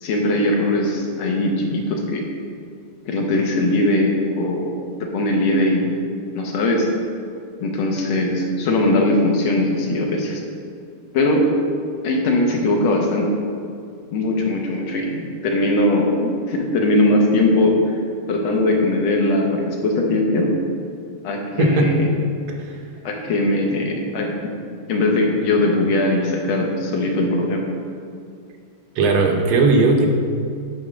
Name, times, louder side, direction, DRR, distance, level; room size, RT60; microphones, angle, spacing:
voice 1, 0.0-2.2 3.0-4.7 5.0-5.9 6.3-6.9 7.6-10.4 11.1-11.5 12.0-13.3 14.1-18.0 18.3-20.5 21.2-22.1 23.0-24.3 24.9-27.6, left 1 dB, 75° left, 1 dB, 1.8 m, -20 dB
voice 2, 21.6-21.9 22.5-22.8 28.9-30.1, right 3 dB, 85° right, 2 dB, 1.7 m, -17 dB
8.8 x 3.6 x 6.2 m, 2.3 s
omnidirectional pair, 2.3 m